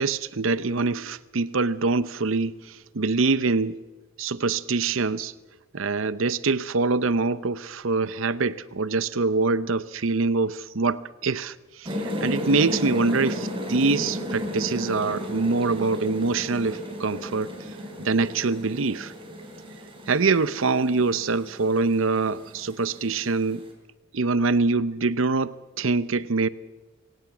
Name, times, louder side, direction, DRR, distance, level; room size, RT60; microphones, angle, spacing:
voice 1, 0.0-3.8 4.2-5.3 5.7-17.6 18.0-19.1 20.1-23.6 24.1-26.5, right 3 dB, 70° right, 0.7 m, -24 dB
sound 1, 11.8-23.7, equal, 25° right, 3.9 m, -33 dB
23.5 x 17.5 x 7.1 m
head